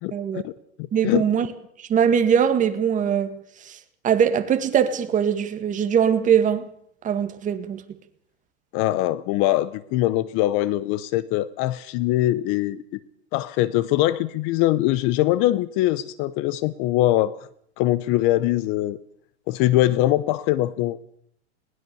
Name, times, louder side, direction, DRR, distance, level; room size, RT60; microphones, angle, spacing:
voice 1, 0.1-0.4 0.9-1.5 1.8-3.4 3.6-6.6 7.0-7.8, right 8 dB, 25° right, 2.1 m, -21 dB
voice 2, 8.7-12.8 13.3-17.4 17.8-19.0 19.5-21.0, left 15 dB, 40° left, 0.8 m, -22 dB
20.5 x 20.0 x 7.0 m
supercardioid pair, 140°, 33 cm